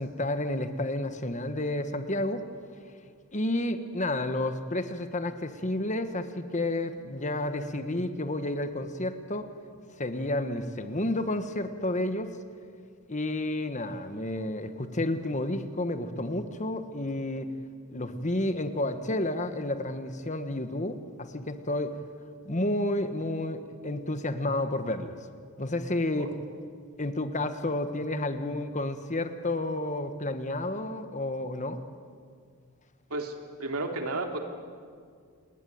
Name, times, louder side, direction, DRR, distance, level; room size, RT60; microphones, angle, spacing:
voice 1, 0.0-2.5 3.3-9.5 10.0-12.3 13.1-17.5 17.9-22.0 22.4-25.2 25.6-26.3 27.0-31.8, left 1 dB, 35° left, 9 dB, 1.4 m, -31 dB
voice 2, 33.6-34.4, right 2 dB, 75° right, 4 dB, 3.1 m, -32 dB
27.5 x 21.5 x 9.5 m, 2.1 s
head